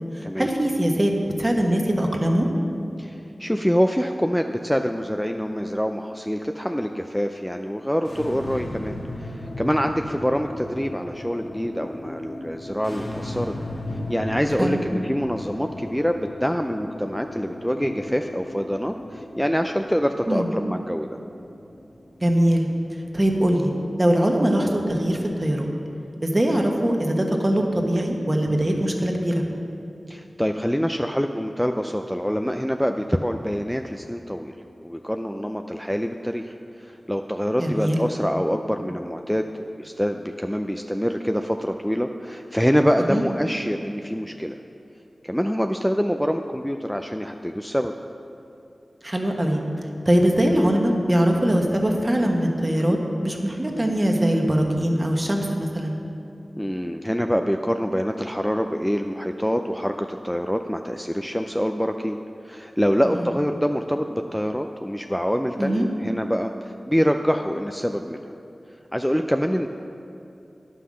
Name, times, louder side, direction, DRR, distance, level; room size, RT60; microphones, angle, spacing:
voice 1, 0.1-2.5 14.6-14.8 20.3-20.5 22.2-22.7 23.1-23.7 24.0-25.7 26.2-29.4 37.6-38.0 43.1-43.2 49.0-49.6 50.0-56.0 63.1-63.2 65.6-65.9, right 1 dB, 30° right, 1 dB, 1.3 m, -22 dB
voice 2, 3.0-13.5 14.1-21.1 26.5-26.6 30.1-34.5 34.8-39.5 39.8-44.6 45.2-47.9 56.6-68.4 68.9-69.7, equal, 5° left, 5 dB, 0.4 m, -25 dB
sound 1, 8.0-23.2, left 1 dB, 45° left, 1.2 m, -36 dB
10.0 x 5.7 x 6.3 m, 2.7 s
cardioid pair, 40°, 0 cm